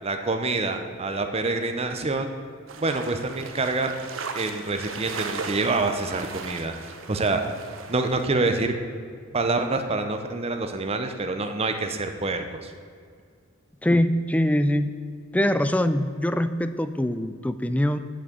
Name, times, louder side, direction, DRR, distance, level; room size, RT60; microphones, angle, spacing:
voice 1, 0.0-2.3 2.8-4.0 4.3-7.4 7.9-8.7 9.3-12.7, right 3 dB, 30° right, 6 dB, 0.7 m, -26 dB
sound 1, 2.7-8.3, right 5 dB, 70° right, 0.9 m, -37 dB
voice 2, 13.8-15.0 15.3-18.0, left 1 dB, 5° left, 11 dB, 0.4 m, -23 dB
8.2 x 6.2 x 8.2 m, 2.1 s
head